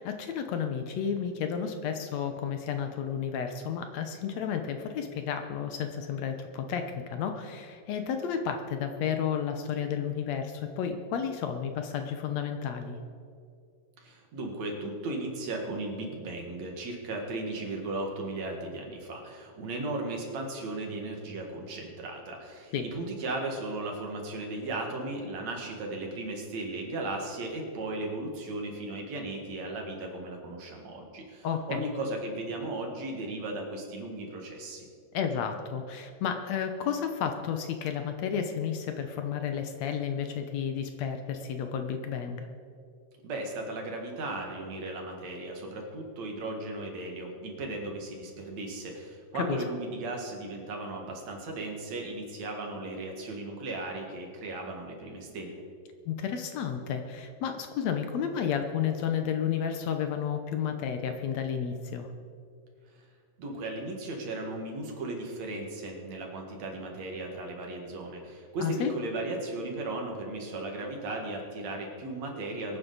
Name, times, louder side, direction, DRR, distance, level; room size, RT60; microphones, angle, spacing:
voice 1, 0.0-13.0 22.7-22.9 31.4-31.8 35.1-42.5 49.3-49.6 56.1-62.1 68.6-68.9, left 7 dB, 70° left, 6 dB, 2.0 m, -32 dB
voice 2, 14.0-34.9 43.2-55.6 62.9-63.1 63.4-72.8, right 2 dB, 65° right, 1 dB, 3.0 m, -36 dB
23.5 x 9.6 x 4.0 m, 2.3 s
omnidirectional pair, 3.4 m